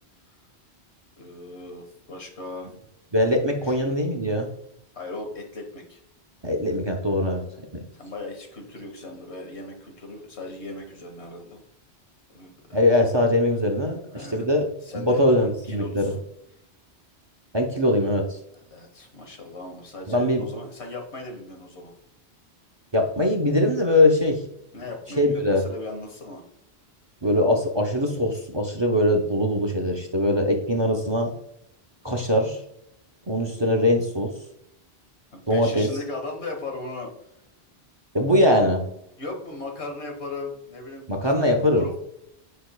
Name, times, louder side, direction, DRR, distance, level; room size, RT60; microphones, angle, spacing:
voice 1, 1.2-2.7 3.6-4.0 4.9-6.0 7.9-11.6 12.3-12.8 14.1-14.5 14.8-16.1 18.7-21.9 24.7-26.4 35.3-37.1 39.2-42.0, left 2 dB, 80° left, 2 dB, 1.7 m, -37 dB
voice 2, 3.1-4.5 6.4-7.4 7.7-7.8 12.7-14.6 14.9-16.1 17.5-18.4 20.1-20.4 22.9-24.4 25.2-25.6 27.2-31.3 32.0-32.6 33.3-34.3 35.5-35.9 38.1-38.8 41.1-41.9, left 1 dB, 30° right, 3 dB, 0.7 m, -22 dB
8.4 x 5.3 x 2.3 m, 0.77 s
omnidirectional pair, 1.1 m